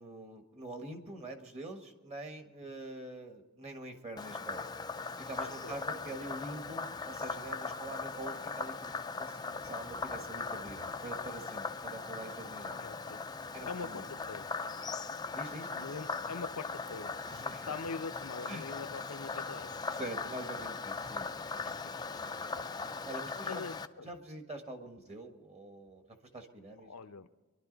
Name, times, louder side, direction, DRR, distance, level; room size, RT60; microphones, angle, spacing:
voice 1, 0.0-4.6 5.2-8.9 9.2-12.8 13.5-14.0 15.3-15.7 17.3-17.7 18.5-18.7 19.7-21.7 21.9-22.5 23.0-23.6 24.0-26.9, right 2 dB, 30° right, 5 dB, 1.6 m, -45 dB
Frog, 4.2-23.9, left 4 dB, 20° left, 0.4 m, -39 dB
voice 2, 5.4-5.7 6.1-6.2 12.8-14.5 15.8-20.0 21.6-21.9 22.6-22.9 23.4-24.1 26.8-27.3, left 4 dB, 90° left, 9 dB, 0.8 m, -44 dB
24.0 x 12.0 x 4.0 m, 1.2 s
head